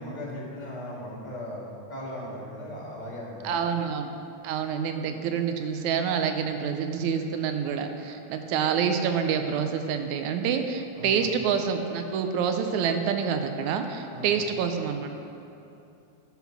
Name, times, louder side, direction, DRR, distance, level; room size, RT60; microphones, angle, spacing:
voice 1, 0.0-1.6 1.9-3.7 10.9-11.3 14.1-14.4, left 1 dB, 20° left, -5 dB, 1.4 m, -38 dB
voice 2, 3.4-4.1 4.4-15.1, right 7 dB, 80° right, 6 dB, 1.9 m, -27 dB
11.5 x 5.9 x 5.9 m, 2.8 s
omnidirectional pair, 3.5 m